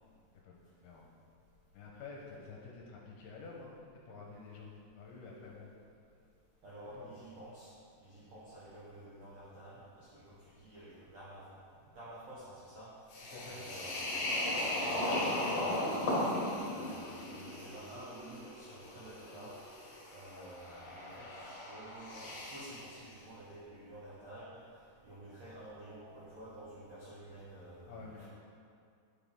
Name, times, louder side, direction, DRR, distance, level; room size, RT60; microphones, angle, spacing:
voice 1, 0.4-1.1 1.7-5.7 6.9-7.2 13.3-13.7 27.9-28.3, left 4 dB, 80° left, -2 dB, 2.5 m, -50 dB
voice 2, 6.6-7.7 8.0-11.5 11.9-12.9 13.4-15.9 16.5-19.5 20.1-24.6 25.0-28.3, right 1 dB, 75° right, -9 dB, 1.5 m, -51 dB
sound 1, 13.1-22.9, left 1 dB, 55° left, 2.0 m, -37 dB
9.1 x 5.7 x 3.5 m, 2.3 s
omnidirectional pair, 4.9 m